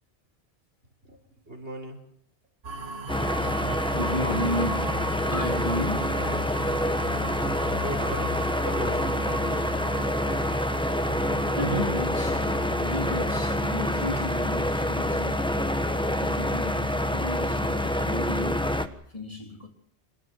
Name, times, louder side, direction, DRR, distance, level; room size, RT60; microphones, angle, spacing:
voice 1, 1.0-2.0 7.7-9.3, equal, 80° right, 4.7 m, -38 dB
sound 1, 2.6-16.4, right 3 dB, 65° right, 2.0 m, -38 dB
sound 2, 3.1-18.9, left 1 dB, 5° left, 1.2 m, -27 dB
voice 2, 3.9-6.3 11.5-15.5 16.1-18.8 19.1-19.7, left 1 dB, 30° left, 3.6 m, -33 dB
sound 3, 8.0-9.2 9.6-10.5 11.4-12.9 13.3-14.3, equal, 45° left, 4.1 m, -49 dB
26.5 x 13.5 x 9.2 m
omnidirectional pair, 1.1 m